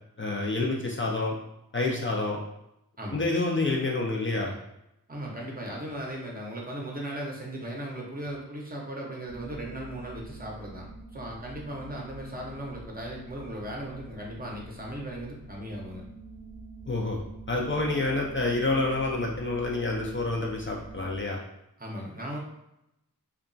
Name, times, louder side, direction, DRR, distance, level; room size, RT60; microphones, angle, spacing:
voice 1, 0.2-1.3 1.7-2.4 3.1-4.5 16.9-17.2 17.5-21.4, left 2 dB, 35° left, -2 dB, 0.4 m, -28 dB
voice 2, 3.0-3.3 5.1-16.0 21.8-22.4, right 1 dB, 25° right, -2 dB, 0.7 m, -37 dB
sound 1, 9.3-21.2, right 2 dB, 80° left, 0.7 m, -46 dB
2.8 x 2.3 x 2.5 m, 0.84 s
wide cardioid pair, 65°, 35 cm